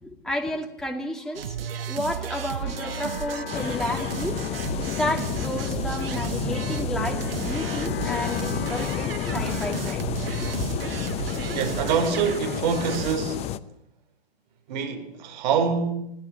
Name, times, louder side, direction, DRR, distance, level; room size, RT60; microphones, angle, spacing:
voice 1, 0.0-1.6 1.9-4.4 4.8-10.0 10.6-10.7, left 1 dB, ahead, 2.5 m, -31 dB
sound 1, 1.3-13.2, right 8 dB, 65° right, 1.2 m, -34 dB
sound 2, 2.2-13.1, left 7 dB, 55° left, 3.4 m, -42 dB
sound 3, 3.5-13.6, left 10 dB, 20° left, 0.8 m, -30 dB
voice 2, 11.5-13.4 14.7-15.9, right 6 dB, 45° right, 4.8 m, -25 dB
22.0 x 17.0 x 9.7 m
hypercardioid pair, 120°, 31 cm